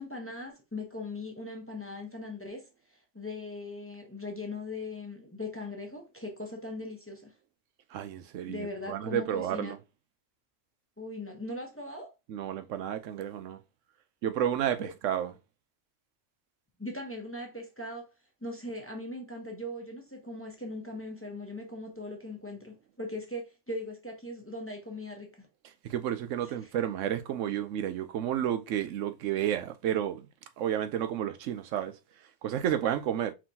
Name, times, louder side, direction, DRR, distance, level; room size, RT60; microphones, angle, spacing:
voice 1, 0.0-2.7 3.1-7.3 8.5-9.7 11.0-12.1 14.8-14.9 16.8-18.1 18.4-25.5 26.4-26.5, left 2 dB, 10° left, 0.9 m, -39 dB
voice 2, 7.9-9.8 12.3-13.6 14.2-15.3 25.8-30.3 30.6-31.9 32.4-33.3, right 10 dB, 90° right, 1.0 m, -31 dB
5.0 x 3.7 x 2.8 m
omnidirectional pair, 1.3 m